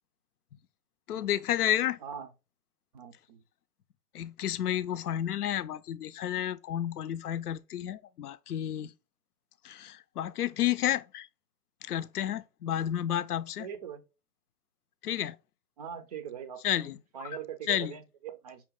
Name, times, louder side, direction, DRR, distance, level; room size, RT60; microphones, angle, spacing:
voice 1, 1.1-2.0 4.1-8.9 9.6-11.3 11.8-13.7 15.0-15.4 16.6-17.3 17.7-17.9, left 11 dB, 75° left, 0.6 m, -31 dB
voice 2, 2.0-2.3 2.9-3.4 13.6-14.0 15.8-18.6, right 8 dB, 30° right, 0.5 m, -42 dB
5.7 x 2.2 x 3.7 m
hypercardioid pair, 135°, 45 cm